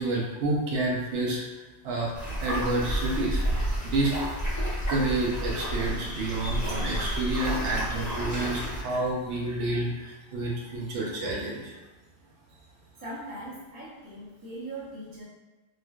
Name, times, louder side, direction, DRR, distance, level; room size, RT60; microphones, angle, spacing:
voice 1, 0.0-3.4 3.8-4.4 4.9-11.8, right 2 dB, 80° right, -2 dB, 0.9 m, -29 dB
sound 1, 2.1-8.8, equal, 20° left, 0.7 m, -30 dB
voice 2, 13.0-15.2, right 1 dB, 20° right, -7 dB, 0.6 m, -40 dB
3.1 x 2.4 x 2.3 m, 1.2 s
omnidirectional pair, 1.2 m